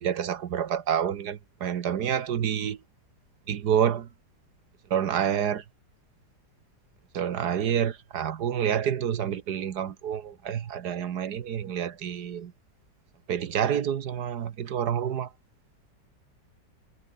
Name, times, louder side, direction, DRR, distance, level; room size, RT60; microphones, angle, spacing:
voice 1, 0.0-2.8 3.5-4.1 4.9-5.6 7.1-12.5 13.3-15.3, right 9 dB, 65° right, 1.6 m, -28 dB
omnidirectional pair, 1.9 m